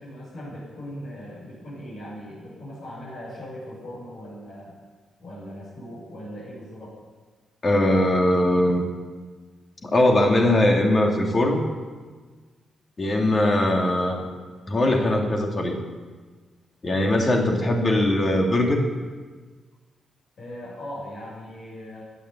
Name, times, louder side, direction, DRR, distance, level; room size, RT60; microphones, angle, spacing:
voice 1, 0.0-4.8 5.2-7.0 20.4-22.0, equal, 60° left, -6 dB, 6.8 m, -39 dB
voice 2, 7.6-8.9 9.8-11.6 13.0-14.2 14.7-15.8 16.8-18.9, left 1 dB, 30° left, 1 dB, 2.6 m, -20 dB
15.5 x 10.0 x 8.3 m, 1.4 s
wide cardioid pair, 140°, 0 cm